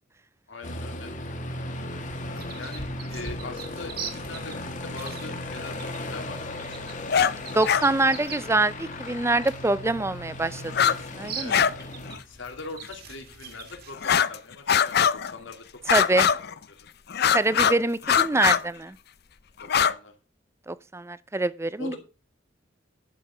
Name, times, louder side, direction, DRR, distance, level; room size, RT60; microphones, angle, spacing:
voice 1, 0.5-1.1 1.5-2.0 2.6-7.1 8.0-8.1 11.3-11.6 12.3-15.6 15.9-16.8 19.6-20.1 21.8-22.0, left 3 dB, 80° left, 2.7 m, -42 dB
Aircraft, 0.6-12.2, left 1 dB, 40° left, 1.8 m, -36 dB
sound 1, 2.3-14.0, right 6 dB, 55° right, 2.2 m, -43 dB
sound 2, 7.1-7.3 7.7-7.8 9.5-9.6 10.7-11.0 11.2-11.8 12.1-12.2 12.8-12.9 14.0-14.4 14.7-15.3 15.9-16.6 17.1-17.8 18.0-18.6 19.6-19.9, left 8 dB, 60° left, 0.6 m, -22 dB
voice 2, 7.5-11.6 15.9-16.3 17.3-19.0 20.7-22.0, right 2 dB, 15° right, 0.5 m, -25 dB
11.0 x 6.8 x 5.8 m
head